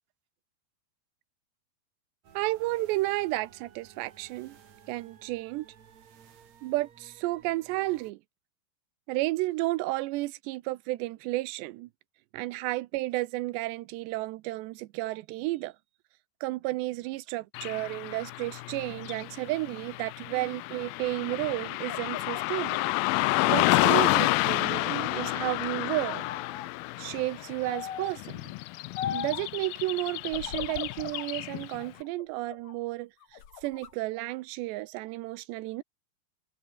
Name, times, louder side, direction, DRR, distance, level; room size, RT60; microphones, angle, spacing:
sound 1, 2.2-8.1, right 8 dB, 45° right, 3.1 m, -56 dB
voice 1, 2.3-4.6 4.9-5.7 6.6-8.2 9.1-11.9 12.3-15.7 16.4-22.9 23.2-26.2 27.0-28.5 29.1-33.1 33.6-35.8, right 19 dB, 85° right, 3.0 m, -32 dB
Car passing by / Traffic noise roadway noise, 17.5-31.8, left 22 dB, 90° left, 2.1 m, -30 dB
sound 2, 21.2-24.4 24.8-25.6 26.0-26.7 27.7-28.2 29.0-29.5 30.3-31.3 31.8-32.8 33.2-33.9, left 9 dB, 55° left, 3.7 m, -40 dB
omnidirectional pair, 4.8 m